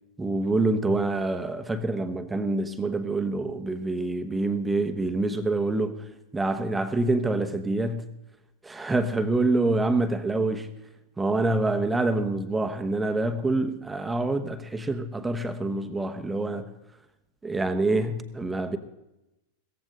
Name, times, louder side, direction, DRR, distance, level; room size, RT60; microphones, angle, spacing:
voice 1, 0.2-6.1 6.3-8.1 8.6-10.7 11.2-16.7 17.4-18.8, right 2 dB, 10° right, 1.1 m, -26 dB
17.0 x 15.0 x 3.9 m
figure-of-eight pair, 90°, 0 cm